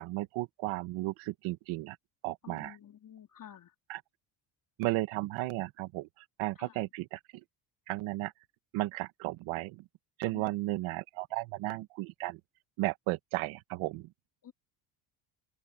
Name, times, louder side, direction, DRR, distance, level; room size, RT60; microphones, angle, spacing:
voice 1, 0.0-2.0 2.2-2.8 3.9-4.0 4.8-7.2 7.9-8.3 8.7-9.8 10.2-12.4 12.8-14.1, right 18 dB, 85° right, 1.7 m, -34 dB
voice 2, 2.4-3.7 6.6-6.9 10.3-10.4 14.4-14.5, left 9 dB, 45° left, 2.9 m, -51 dB
open air
cardioid pair, 95°, 47 cm